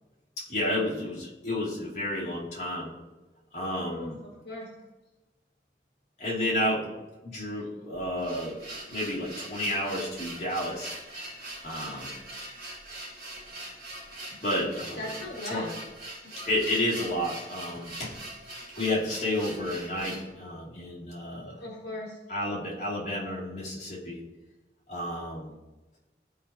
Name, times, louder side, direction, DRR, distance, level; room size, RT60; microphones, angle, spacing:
voice 1, 0.5-2.9 3.5-4.2 6.2-6.9 7.2-8.5 8.9-10.9 11.6-12.1 14.4-15.1 15.5-15.6 16.4-18.2 18.7-21.6 22.3-24.2 24.9-25.6, left 1 dB, 40° left, -6 dB, 2.4 m, -31 dB
voice 2, 3.9-4.7 15.0-15.7 21.6-22.1, left 2 dB, 70° left, -3 dB, 1.5 m, -38 dB
sound 1, 8.0-20.3, right 1 dB, 50° right, 2.8 m, -42 dB
13.0 x 4.6 x 2.8 m, 1.1 s
head